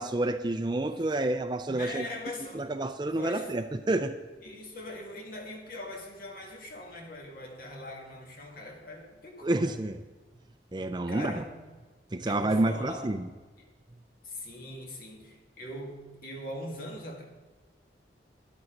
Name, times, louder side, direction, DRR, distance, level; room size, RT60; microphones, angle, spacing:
voice 1, 0.0-2.1 2.5-4.1 9.4-10.0 10.7-11.3 12.1-13.3, right 2 dB, 25° right, 9 dB, 0.5 m, -29 dB
voice 2, 1.7-2.7 3.1-3.5 4.4-9.8 11.1-11.7 12.3-13.2 13.6-13.7 14.2-17.2, left 1 dB, 55° left, 1 dB, 2.1 m, -41 dB
12.0 x 11.0 x 3.9 m, 1.3 s
head